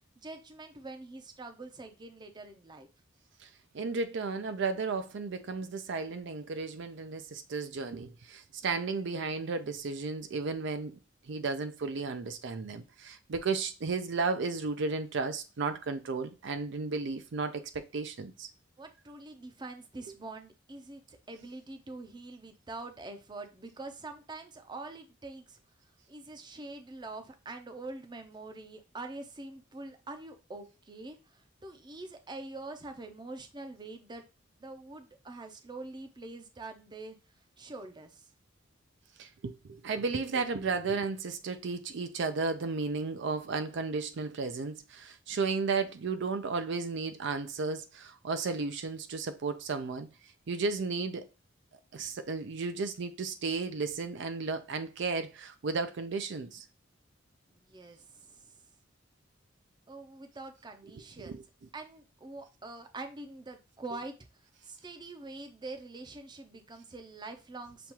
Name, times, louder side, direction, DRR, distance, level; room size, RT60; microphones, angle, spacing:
voice 1, 0.2-2.9 18.8-21.0 21.3-25.6 26.1-34.2 34.6-37.2 37.6-38.2 57.5-58.5 59.9-61.4 61.7-64.1 64.6-67.9, right 2 dB, 25° right, 0.6 m, -45 dB
voice 2, 3.7-10.9 11.3-17.6 17.9-18.5 39.2-50.1 50.5-51.2 51.9-56.6 61.2-61.4, right 4 dB, 65° right, 0.5 m, -34 dB
6.9 x 2.4 x 2.9 m
head